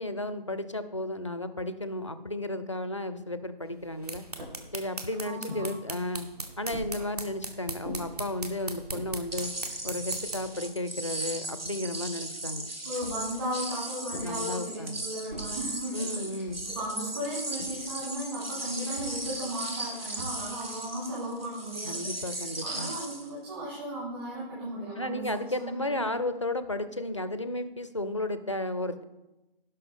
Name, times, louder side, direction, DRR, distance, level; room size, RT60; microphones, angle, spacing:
voice 1, 0.0-4.2 4.7-6.3 6.6-9.5 9.8-12.7 14.2-15.0 15.9-16.6 21.8-22.9 25.0-29.0, left 1 dB, 35° left, 12 dB, 0.4 m, -33 dB
sound 1, 3.8-10.6, right 3 dB, 40° right, 1.0 m, -40 dB
sound 2, 4.4-4.6 5.5-5.7 6.7-7.0 7.8-8.0 8.7-9.1 9.8-9.9 10.2-11.2 13.0-13.4 14.1-14.4 15.3-15.6 16.5-16.8 17.6-17.9 18.9-19.2 20.2-20.6, equal, 55° right, 3.5 m, -42 dB
voice 2, 5.2-5.6 12.8-26.1, equal, 25° right, -6 dB, 2.0 m, -36 dB
sound 3, 9.3-23.3, right 2 dB, 80° right, 1.6 m, -37 dB
16.5 x 5.6 x 3.6 m, 0.99 s
figure-of-eight pair, 155°, 29 cm